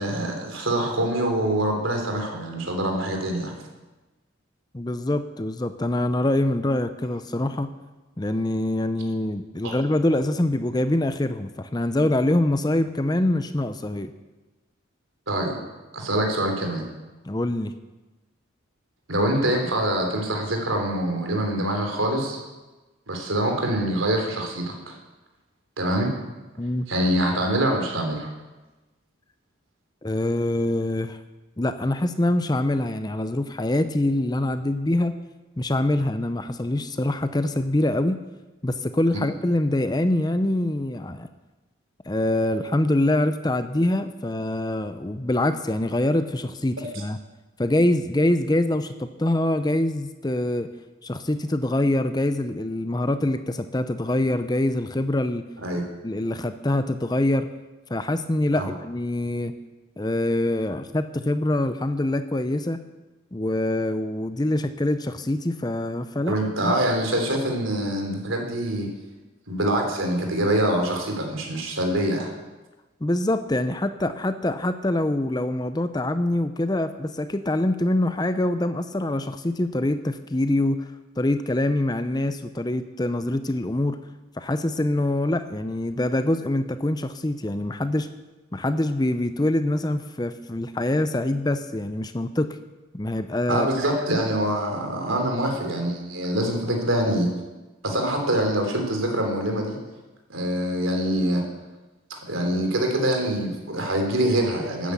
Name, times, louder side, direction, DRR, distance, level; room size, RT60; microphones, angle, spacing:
voice 1, 0.0-3.5 9.6-9.7 15.3-15.6 15.9-16.8 19.1-22.4 23.1-25.0 25.8-26.1 26.9-28.3 55.6-55.8 58.5-58.6 66.3-68.9 69.5-72.3 93.5-97.3 97.8-99.8 100.3-101.4 102.1-104.9, right 1 dB, 80° right, 2 dB, 3.4 m, -25 dB
voice 2, 4.7-7.7 8.2-14.1 17.3-17.7 26.6-26.9 30.0-31.2 31.6-35.1 35.6-38.2 38.6-41.3 42.1-47.2 47.6-50.7 51.0-55.5 56.0-57.5 57.9-59.5 60.0-62.8 63.3-66.4 66.6-66.8 73.0-80.9 81.2-84.0 84.4-88.1 88.5-92.6 92.9-93.7, left 1 dB, 20° left, 10 dB, 0.6 m, -24 dB
12.5 x 9.7 x 8.4 m, 1.1 s
head